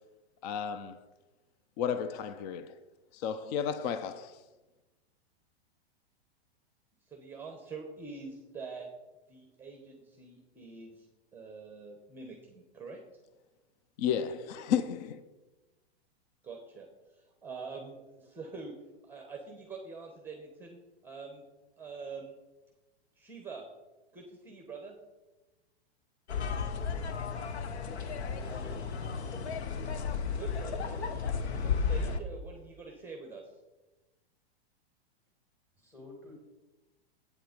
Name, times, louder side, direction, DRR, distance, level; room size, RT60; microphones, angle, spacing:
voice 1, 0.4-1.0 1.8-2.8 3.1-4.4 14.0-15.2, left 8 dB, 40° left, 0.5 m, -32 dB
voice 2, 7.0-8.9 9.3-11.1 11.3-13.0 16.4-18.7 19.0-20.8 21.0-21.4 21.8-22.4 23.2-23.7 24.1-25.0 30.3-33.5, right 4 dB, 5° right, 1.0 m, -45 dB
sound 1, 26.3-32.2, left 5 dB, 85° left, 1.1 m, -33 dB
voice 3, 28.2-29.5 35.8-36.4, left 1 dB, 10° left, 2.9 m, -50 dB
8.5 x 7.7 x 5.1 m
hypercardioid pair, 145°, 32 cm